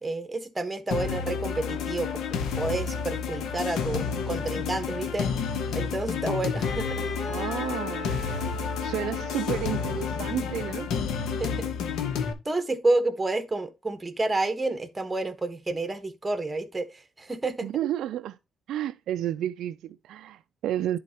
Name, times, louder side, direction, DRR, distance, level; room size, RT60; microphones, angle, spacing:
voice 1, 0.0-2.2 2.6-5.3 5.7-7.1 11.4-11.6 12.4-17.7, right 2 dB, 20° right, 1.3 m, -29 dB
sound 1, 0.9-12.3, left 6 dB, 80° left, 1.1 m, -30 dB
Wind instrument woodwind instrument, 6.6-10.7, left 3 dB, 50° left, 2.1 m, -38 dB
voice 2, 7.3-8.1 8.8-10.9 17.6-18.4 18.7-21.0, right 12 dB, 80° right, 0.3 m, -31 dB
10.5 x 4.3 x 2.9 m
cardioid pair, 90°, 0 cm